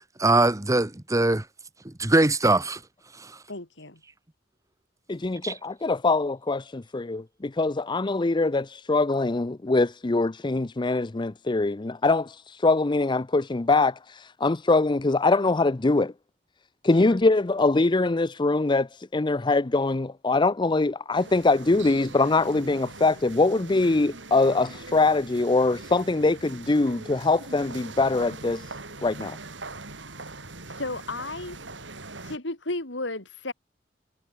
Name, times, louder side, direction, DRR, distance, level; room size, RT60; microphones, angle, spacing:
voice 1, 0.2-1.4 1.8-2.8 5.4-5.5, right 2 dB, 20° right, 1.2 m, -21 dB
voice 2, 3.5-4.0 16.9-17.2 30.7-31.6 32.2-33.5, left 2 dB, 75° left, 4.3 m, -34 dB
voice 3, 5.1-16.1 16.8-28.7 29.0-29.4, left 3 dB, 25° left, 0.6 m, -23 dB
sound 1, 21.1-32.4, right 3 dB, 75° right, 5.7 m, -42 dB
head